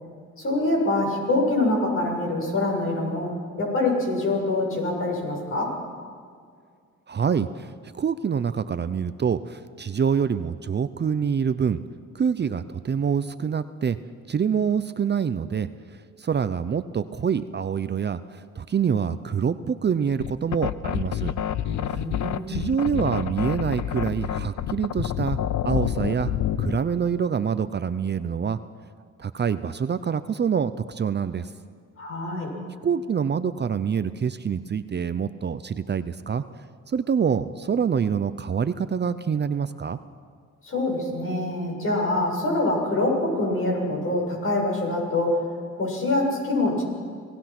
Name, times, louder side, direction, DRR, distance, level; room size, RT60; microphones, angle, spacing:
voice 1, 0.4-5.8 21.7-22.6 32.0-32.5 40.6-45.4 45.7-46.8, left 2 dB, 45° left, 0 dB, 7.3 m, -25 dB
voice 2, 7.1-11.8 12.1-14.0 14.3-15.7 16.2-21.3 21.9-22.0 22.5-25.4 25.6-26.3 26.6-28.6 29.2-31.5 32.8-36.4 36.9-40.0, right 7 dB, 35° right, 12 dB, 0.7 m, -26 dB
sound 1, 20.2-26.8, left 10 dB, 70° left, 0.8 m, -28 dB
27.0 x 18.0 x 6.1 m, 2.1 s
cardioid pair, 90°, 30 cm